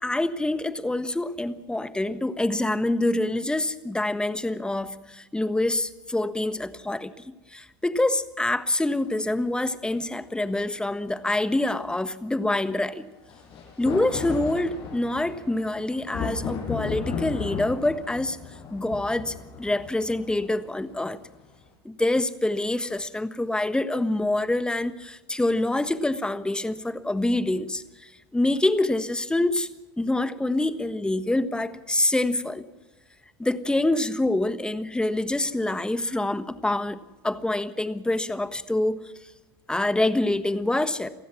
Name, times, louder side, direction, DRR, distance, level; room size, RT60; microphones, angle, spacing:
voice 1, 0.0-13.0 13.8-18.4 18.7-21.2 21.8-29.7 30.0-32.6 33.4-37.0 37.2-39.0 39.7-41.1, left 2 dB, 5° left, 12 dB, 1.4 m, -26 dB
sound 1, 9.4-9.5 13.3-21.6, left 5 dB, 45° left, 7.3 m, -35 dB
28.0 x 15.5 x 6.1 m, 1.1 s
hypercardioid pair, 90°, 13 cm